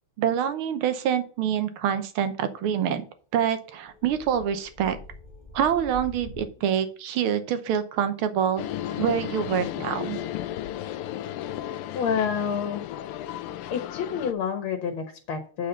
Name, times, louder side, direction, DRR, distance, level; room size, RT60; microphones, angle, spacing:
voice 1, 0.2-3.1 3.3-5.0 5.5-8.6 9.0-10.2, right 9 dB, 75° right, 10 dB, 1.7 m, -26 dB
sound 1, 3.6-6.6, left 2 dB, 25° left, 1.5 m, -44 dB
sound 2, 8.6-14.3, left 12 dB, 90° left, 1.5 m, -34 dB
voice 2, 11.9-12.8 13.7-15.7, left 7 dB, 75° left, 5 dB, 2.0 m, -29 dB
8.6 x 4.1 x 6.7 m, 0.42 s
omnidirectional pair, 2.4 m